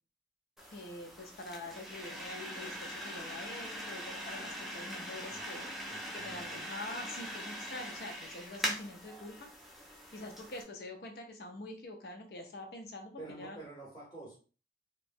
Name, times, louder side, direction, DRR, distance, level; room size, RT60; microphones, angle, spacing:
sound 1, 0.6-10.6, equal, ahead, 0.4 m, -42 dB
voice 1, 0.7-5.7 6.1-9.5 10.1-13.6, left 2 dB, 65° left, 4 dB, 0.6 m, -45 dB
voice 2, 5.3-6.7 13.2-14.4, right 2 dB, 20° left, -6 dB, 0.9 m, -49 dB
2.9 x 2.3 x 2.5 m, 0.36 s
head